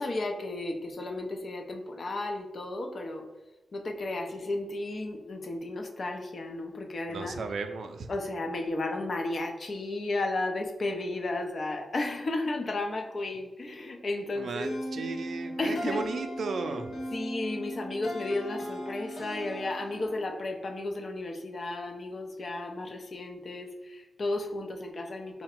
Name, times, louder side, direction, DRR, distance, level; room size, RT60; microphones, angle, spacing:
voice 1, 0.0-3.3 3.7-7.4 8.1-15.1 15.6-16.1 16.6-16.7 17.1-25.4, left 2 dB, 50° left, 4 dB, 0.5 m, -33 dB
voice 2, 7.1-8.1 14.4-17.0, right 4 dB, 70° right, 7 dB, 0.4 m, -35 dB
sound 1, 14.6-20.4, equal, 70° left, 1.0 m, -38 dB
3.7 x 2.1 x 4.3 m, 1.0 s
wide cardioid pair, 105°, 0 cm